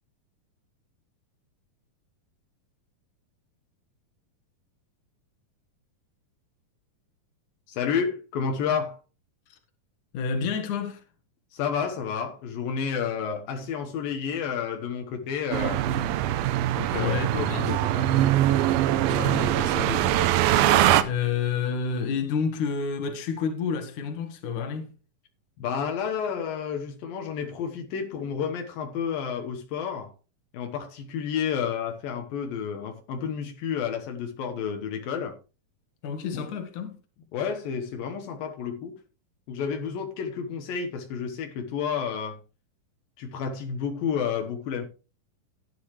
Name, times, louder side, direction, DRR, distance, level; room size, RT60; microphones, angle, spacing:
voice 1, 7.7-9.0 11.5-15.8 16.8-18.1 25.6-30.1 30.5-35.4 36.3-36.4 37.3-39.0 39.5-42.4 43.2-44.9, left 7 dB, 80° left, 3.0 m, -30 dB
voice 2, 10.1-11.0 16.9-17.8 19.0-24.9 36.0-37.0, left 6 dB, 60° left, 3.0 m, -30 dB
sound 1, 15.5-21.0, right 13 dB, 90° right, 2.6 m, -22 dB
13.5 x 9.5 x 3.2 m
omnidirectional pair, 4.1 m